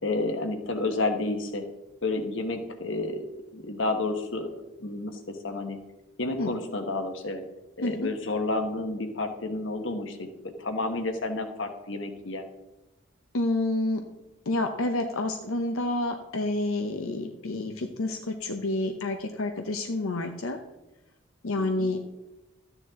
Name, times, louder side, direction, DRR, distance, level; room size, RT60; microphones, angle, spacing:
voice 1, 0.0-1.6 2.0-3.2 3.5-5.8 6.2-7.4 7.8-12.5 21.6-21.9, left 2 dB, 70° left, 6 dB, 1.3 m, -30 dB
voice 2, 7.8-8.1 13.3-14.0 14.5-20.6 21.4-22.0, left 2 dB, 90° left, 5 dB, 0.8 m, -29 dB
13.5 x 9.8 x 3.7 m, 1.0 s
head